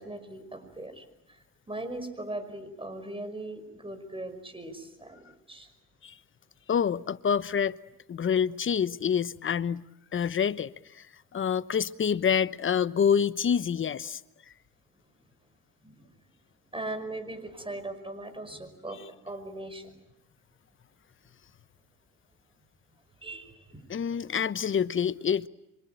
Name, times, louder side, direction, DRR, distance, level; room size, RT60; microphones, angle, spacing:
voice 1, 0.0-5.7 15.8-16.1 16.7-19.0 19.2-20.0 23.2-23.9, right 2 dB, 15° right, 5.3 m, -39 dB
voice 2, 6.7-7.8 8.1-9.9 10.1-11.1 11.3-14.2 23.9-25.5, left 7 dB, 40° left, 1.0 m, -27 dB
26.5 x 24.5 x 9.0 m
cardioid pair, 90°, 30 cm